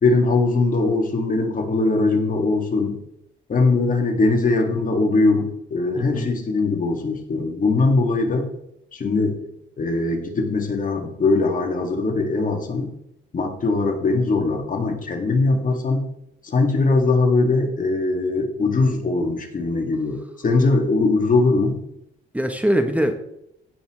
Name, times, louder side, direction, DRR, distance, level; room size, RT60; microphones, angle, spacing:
voice 1, 0.0-3.0 3.5-8.5 8.9-9.4 9.8-12.9 13.3-16.0 16.4-21.8, left 3 dB, 40° left, 3 dB, 2.2 m, -21 dB
voice 2, 6.0-6.3 15.4-15.6 22.3-23.1, equal, 5° right, 6 dB, 0.9 m, -22 dB
16.5 x 5.6 x 3.2 m, 0.78 s
cardioid pair, 90°, 20 cm